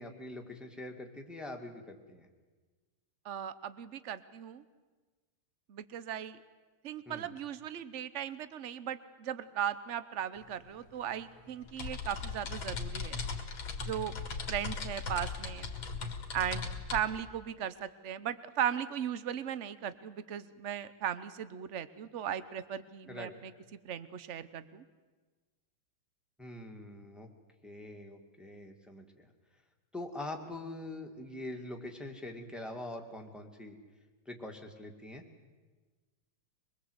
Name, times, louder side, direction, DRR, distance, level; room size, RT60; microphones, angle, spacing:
voice 1, 0.0-2.3 7.1-7.3 23.1-23.3 26.4-27.3 27.6-29.3 29.9-33.8 34.3-35.2, left 1 dB, ahead, 2 dB, 2.0 m, -44 dB
voice 2, 3.2-4.6 5.7-6.4 6.8-13.2 13.8-14.1 14.5-15.7 16.3-23.5 23.8-24.8, right 9 dB, 55° right, 14 dB, 0.8 m, -37 dB
sound 1, 10.4-10.5 10.8-17.0, left 4 dB, 65° left, 2.6 m, -38 dB
23.0 x 22.0 x 8.1 m, 1.3 s
omnidirectional pair, 2.4 m